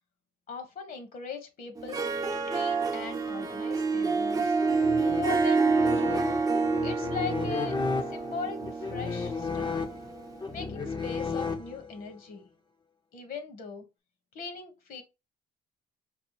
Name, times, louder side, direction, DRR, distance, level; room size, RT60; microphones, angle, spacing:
voice 1, 0.5-2.0 2.3-4.6 5.1-6.3 6.8-7.8 8.1-9.8 10.5-12.5 13.1-13.8 14.3-15.0, left 4 dB, 55° left, 1.2 m, -39 dB
Harp, 1.8-10.4, right 4 dB, 20° right, 0.6 m, -28 dB
sound 1, 4.6-12.1, left 4 dB, 25° left, 0.6 m, -34 dB
5.4 x 2.4 x 2.9 m
cardioid pair, 110°, 17 cm